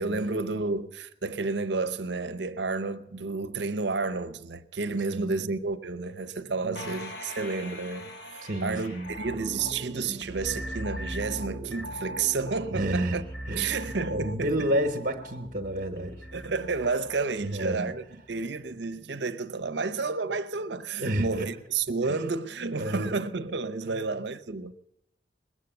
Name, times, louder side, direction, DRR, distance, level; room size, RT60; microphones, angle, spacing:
voice 1, 0.0-13.2 13.6-14.5 16.3-18.0 18.3-24.7, right 4 dB, 75° right, 0.8 m, -31 dB
voice 2, 5.1-5.5 6.6-7.0 8.4-9.1 12.7-13.2 13.5-13.8 14.1-16.3 17.4-17.9 21.0-21.5 22.0-22.2 22.7-23.1 23.8-24.1, right 1 dB, 50° right, 1.2 m, -30 dB
sound 1, 6.7-10.4, left 1 dB, 70° left, 1.5 m, -43 dB
sound 2, 9.0-18.4 18.7-18.8, equal, 10° left, 1.7 m, -40 dB
21.0 x 8.2 x 8.0 m
head